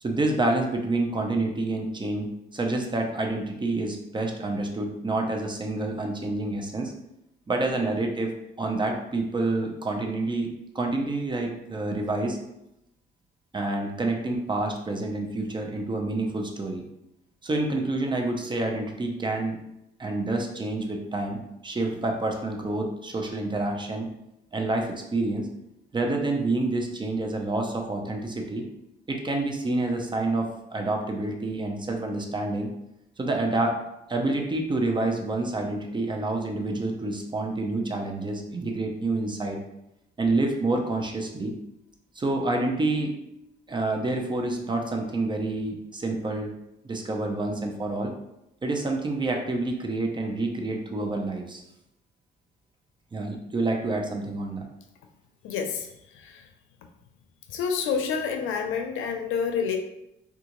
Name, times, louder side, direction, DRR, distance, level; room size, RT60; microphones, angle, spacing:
voice 1, 0.0-6.9 7.5-8.3 8.6-10.5 10.7-12.4 13.5-16.8 17.4-19.6 20.0-24.1 24.5-25.5 25.9-28.6 29.1-32.7 33.2-33.8 34.1-39.6 40.2-41.5 42.2-43.1 43.7-46.5 46.8-48.1 48.6-51.6 53.1-54.7, right 2 dB, 25° right, 2 dB, 0.6 m, -28 dB
voice 2, 55.4-56.5 57.5-59.8, left 6 dB, 90° left, 5 dB, 0.5 m, -28 dB
3.6 x 2.4 x 2.9 m, 0.84 s
cardioid pair, 90°, 20 cm